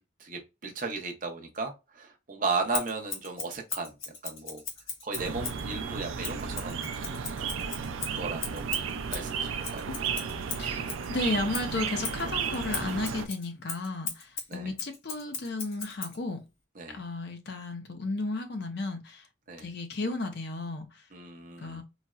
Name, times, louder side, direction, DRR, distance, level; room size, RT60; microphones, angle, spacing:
voice 1, 0.2-3.9 4.2-4.6 5.0-7.4 8.1-8.7 9.1-9.8 14.5-14.7 16.8-17.0 19.5-19.7 21.1-21.8, right 4 dB, 40° right, 0.7 m, -35 dB
Scissors, 2.7-5.7 6.2-11.1 11.5-16.2, left 4 dB, 85° left, 1.2 m, -38 dB
sound 1, 5.1-13.3, right 6 dB, 85° right, 0.4 m, -34 dB
voice 2, 10.6-16.4 16.9-19.3 19.6-21.1 21.6-21.8, left 2 dB, 55° left, 0.6 m, -34 dB
4.0 x 2.0 x 2.3 m
head